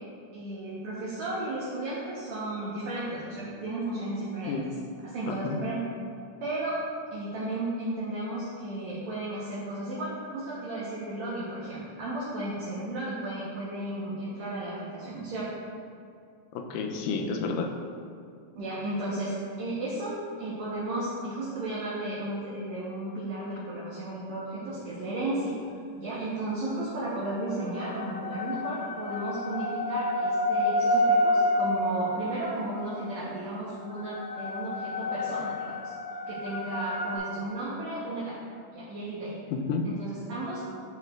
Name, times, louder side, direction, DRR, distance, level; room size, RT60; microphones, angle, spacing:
voice 1, 0.3-4.6 5.0-5.8 6.4-6.8 7.1-15.5 18.6-25.5 26.0-35.9 36.3-38.4 38.7-39.3 39.8-40.6, right 1 dB, 65° right, -8 dB, 2.0 m, -34 dB
voice 2, 5.3-5.6 16.6-17.7 39.5-39.9, left 4 dB, 90° left, 3 dB, 2.3 m, -30 dB
sound 1, 27.3-33.0 33.8-37.2, left 1 dB, 70° left, 2.7 m, -29 dB
12.5 x 4.5 x 2.4 m, 2.3 s
omnidirectional pair, 3.8 m